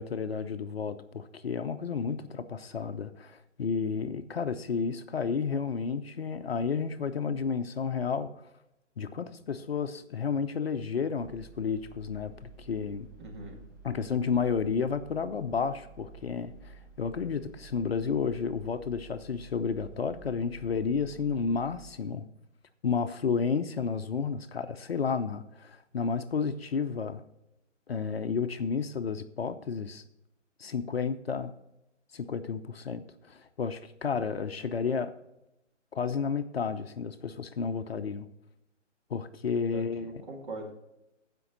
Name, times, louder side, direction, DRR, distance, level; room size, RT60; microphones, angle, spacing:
voice 1, 0.0-8.3 9.0-13.1 13.8-22.2 22.8-27.2 27.9-30.0 30.6-31.5 32.1-35.1 35.9-38.3 39.1-40.2, left 5 dB, 55° left, 10 dB, 0.7 m, -31 dB
sound 1, 11.2-21.9, right 3 dB, 15° right, 0.7 m, -51 dB
voice 2, 13.2-13.6 39.7-40.7, right 2 dB, 40° right, 1 dB, 2.2 m, -41 dB
15.0 x 5.3 x 3.9 m, 0.88 s
figure-of-eight pair, 150°, 37 cm